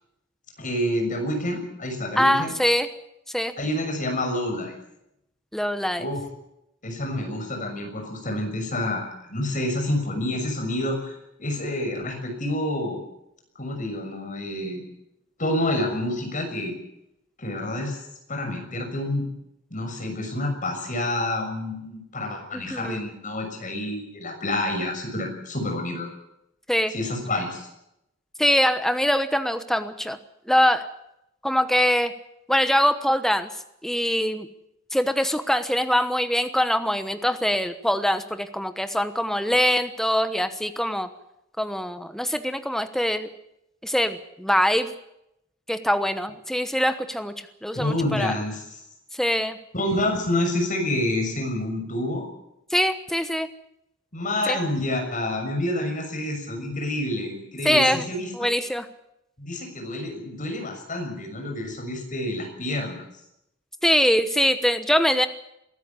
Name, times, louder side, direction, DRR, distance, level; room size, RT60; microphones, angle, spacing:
voice 1, 0.6-2.5 3.6-4.8 6.0-6.2 6.8-13.0 13.6-14.8 15.4-16.7 17.4-18.0 18.3-19.3 19.7-26.1 26.9-27.7 47.7-48.6 49.7-52.2 54.1-58.3 59.4-63.0, left 1 dB, 40° left, 4 dB, 6.5 m, -28 dB
voice 2, 2.2-2.9 3.3-3.5 5.5-6.1 22.5-23.0 26.7-26.9 28.4-30.2 30.5-30.9 31.4-32.1 32.5-33.5 33.8-34.5 34.9-41.1 41.6-43.3 43.8-44.9 45.7-47.3 47.6-48.3 49.1-49.6 52.7-53.5 54.5-54.6 57.6-58.0 58.3-58.9 63.8-65.3, equal, ahead, 9 dB, 1.1 m, -23 dB
22.5 x 13.5 x 9.8 m, 0.83 s
head